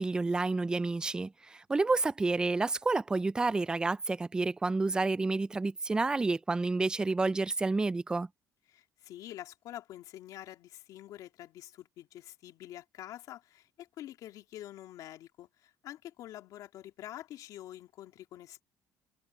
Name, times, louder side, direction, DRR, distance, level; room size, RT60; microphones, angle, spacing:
voice 1, 0.0-8.3, right 3 dB, 10° right, 0.4 m, -29 dB
voice 2, 8.7-18.6, left 13 dB, 65° left, 2.8 m, -47 dB
cardioid pair, 140°, 7 cm